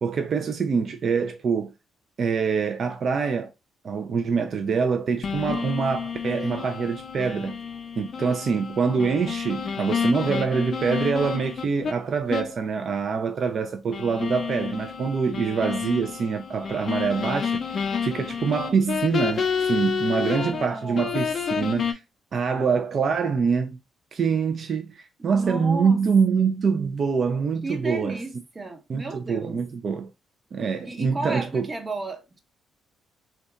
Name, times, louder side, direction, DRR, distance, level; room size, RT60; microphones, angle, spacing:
voice 1, 0.0-1.7 2.2-3.5 3.8-7.6 8.0-22.0 22.3-23.8 24.1-28.2 28.9-30.1 30.5-31.7, right 5 dB, 50° right, 0.3 m, -25 dB
sound 1, 5.2-11.9 12.3-12.6 12.9-13.0 13.9-20.7 20.9-21.9, left 6 dB, 45° left, 0.4 m, -29 dB
voice 2, 20.2-21.1 25.2-26.0 27.6-29.6 30.8-32.4, right 2 dB, 25° right, 0.7 m, -34 dB
2.8 x 2.2 x 2.2 m
cardioid pair, 90°, 0 cm